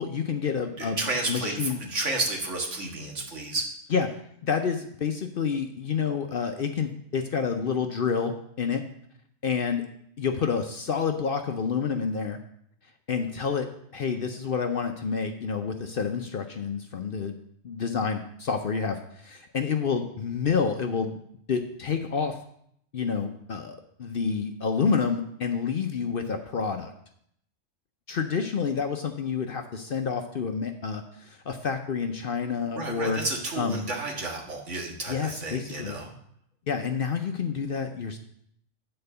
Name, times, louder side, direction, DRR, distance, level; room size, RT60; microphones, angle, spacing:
voice 1, 0.0-1.0 1.3-1.8 3.9-4.1 4.4-8.8 9.4-9.8 10.2-12.4 13.1-13.7 13.9-17.4 17.6-21.2 21.5-22.4 22.9-26.9 28.1-33.2 33.5-33.8 35.1-36.0 36.7-38.2, left 6 dB, 55° left, 5 dB, 0.7 m, -28 dB
voice 2, 0.8-3.7 32.7-36.1, right 2 dB, 65° right, 0 dB, 1.9 m, -31 dB
8.8 x 4.4 x 6.6 m, 0.70 s
omnidirectional pair, 1.3 m